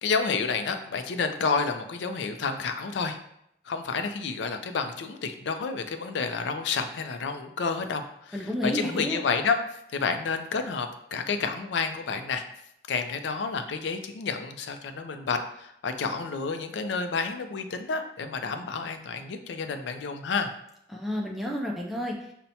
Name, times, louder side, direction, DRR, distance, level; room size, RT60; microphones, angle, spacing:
voice 1, 0.0-3.2 3.7-9.6 9.9-12.4 12.9-20.5, left 5 dB, 85° left, 7 dB, 0.4 m, -30 dB
voice 2, 8.3-9.2 20.9-22.1, left 1 dB, ahead, -1 dB, 0.3 m, -30 dB
5.5 x 2.1 x 2.7 m, 0.76 s
head